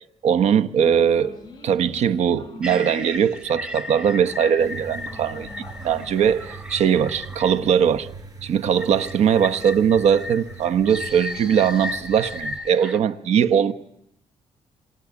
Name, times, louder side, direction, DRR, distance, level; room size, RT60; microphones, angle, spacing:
voice 1, 0.2-1.3 1.6-5.5 5.8-8.1 8.4-13.7, right 8 dB, 75° right, 1.2 m, -20 dB
sound 1, 0.8-7.3, left 3 dB, 40° left, 4.0 m, -44 dB
sound 2, 2.6-7.9 8.8-13.0, left 2 dB, 5° right, 2.9 m, -35 dB
sound 3, 4.6-12.6, right 4 dB, 35° right, 5.2 m, -41 dB
27.5 x 24.0 x 8.5 m
cardioid pair, 105°, 11 cm